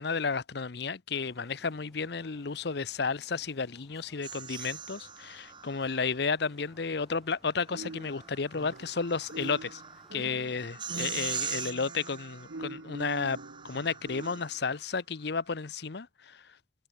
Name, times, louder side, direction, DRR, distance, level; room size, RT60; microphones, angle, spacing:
voice 1, 0.0-9.8 10.1-13.4 13.6-16.4, left 5 dB, 60° left, 0.7 m, -32 dB
sound 1, 1.1-10.7, equal, ahead, 7.4 m, -62 dB
sound 2, 4.2-6.2 7.6-14.8, right 7 dB, 25° right, 5.5 m, -42 dB
sound 3, 7.7-9.0 9.3-14.6, right 2 dB, 80° right, 1.1 m, -44 dB
head